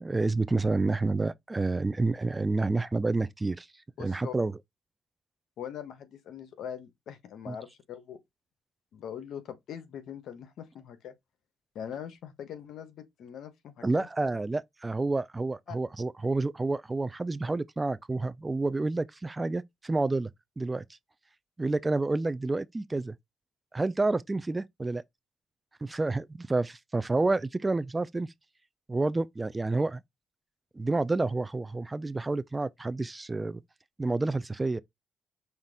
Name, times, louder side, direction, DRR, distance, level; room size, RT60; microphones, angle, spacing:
voice 1, 0.0-3.7 4.0-4.6 7.5-7.6 13.8-20.3 20.6-20.8 21.6-23.1 23.7-25.0 25.8-28.3 28.9-30.0 30.8-33.6 34.0-34.8, right 3 dB, 20° right, 0.3 m, -29 dB
voice 2, 4.0-4.3 5.6-8.2 8.9-11.1 11.7-14.1 15.7-15.8, left 9 dB, 75° left, 1.0 m, -42 dB
5.7 x 2.5 x 3.4 m
cardioid pair, 90°, 0 cm